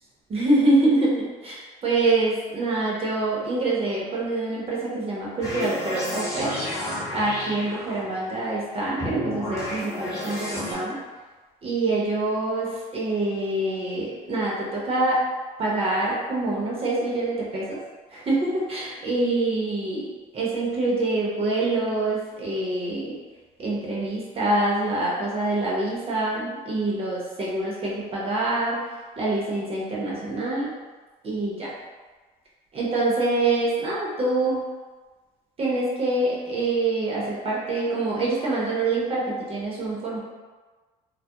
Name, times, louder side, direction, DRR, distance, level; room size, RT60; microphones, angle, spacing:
voice 1, 0.3-6.5 7.1-11.0 11.6-15.2 15.6-17.8 18.1-23.2 23.6-28.8 29.2-30.7 31.2-31.7 32.7-34.6 35.6-40.2, right 2 dB, 35° right, -5 dB, 0.7 m, -25 dB
sound 1, 5.4-8.3 9.0-10.7, left 1 dB, 20° left, 0.9 m, -31 dB
2.2 x 2.0 x 2.8 m, 1.3 s
cardioid pair, 105°, 17 cm